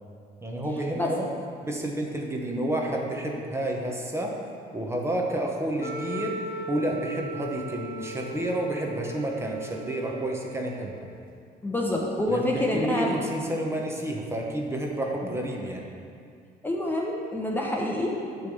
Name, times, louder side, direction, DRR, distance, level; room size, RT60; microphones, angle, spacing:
voice 1, 0.4-1.3 1.6-4.4 4.7-6.4 6.7-10.9 12.3-15.9, right 1 dB, 15° right, 0 dB, 1.0 m, -30 dB
Wind instrument woodwind instrument, 5.8-10.9, equal, 55° left, 2.0 m, -38 dB
voice 2, 11.6-13.2 15.2-15.3 16.6-18.5, left 1 dB, 10° left, -2 dB, 0.8 m, -27 dB
9.6 x 3.4 x 6.9 m, 2.3 s
cardioid pair, 110°, 17 cm